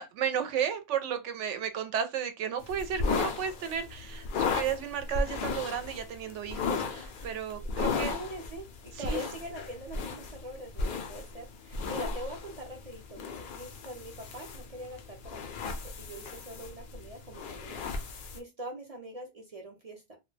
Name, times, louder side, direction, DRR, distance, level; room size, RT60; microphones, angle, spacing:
voice 1, 0.0-8.1 8.9-9.2, right 8 dB, 80° right, 0.9 m, -33 dB
sound 1, 2.6-18.4, left 4 dB, 60° left, 0.5 m, -35 dB
voice 2, 6.8-7.3 7.8-20.2, right 1 dB, 45° right, 0.5 m, -43 dB
2.3 x 2.1 x 3.1 m
omnidirectional pair, 1.2 m